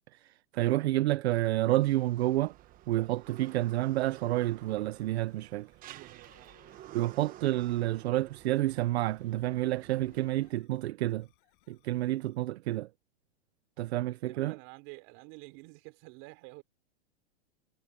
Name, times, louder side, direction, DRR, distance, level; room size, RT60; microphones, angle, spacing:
voice 1, 0.1-2.5 2.9-5.7 6.9-11.3 11.7-12.9 13.8-14.5, right 16 dB, 70° right, 0.7 m, -29 dB
sound 1, 1.3-10.5, right 14 dB, 25° right, 1.1 m, -52 dB
sound 2, 4.2-12.7, left 25 dB, 50° left, 6.4 m, -70 dB
voice 2, 5.9-7.0 14.2-16.6, right 29 dB, 40° right, 4.5 m, -50 dB
supercardioid pair, 150°, 34 cm